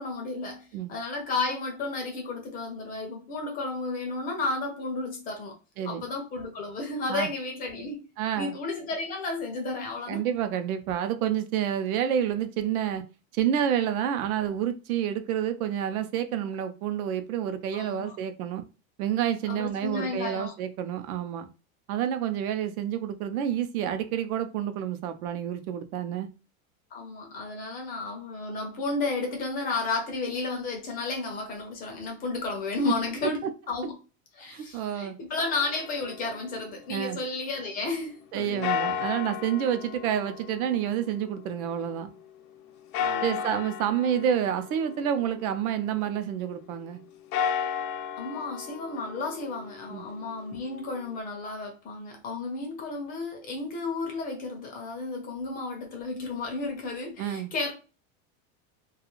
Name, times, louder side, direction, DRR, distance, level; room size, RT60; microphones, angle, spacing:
voice 1, 0.0-5.5 5.8-8.0 8.4-10.2 17.7-18.2 19.5-20.5 26.9-33.4 33.7-33.9 34.3-38.8 43.0-43.4 48.2-57.7, left 3 dB, 20° left, 0.4 m, -33 dB
voice 2, 8.2-8.5 10.1-13.0 13.3-18.6 19.0-21.5 21.9-26.3 32.8-32.9 33.2-33.3 34.4-35.2 36.9-37.2 38.3-42.1 43.2-47.0 49.9-50.0 57.2-57.5, right 9 dB, 80° right, 0.6 m, -29 dB
sound 1, 35.4-37.5 38.6-42.0 42.9-45.9 47.2-51.2, left 7 dB, 65° left, 0.6 m, -35 dB
2.4 x 2.3 x 3.0 m
supercardioid pair, 145°, 42 cm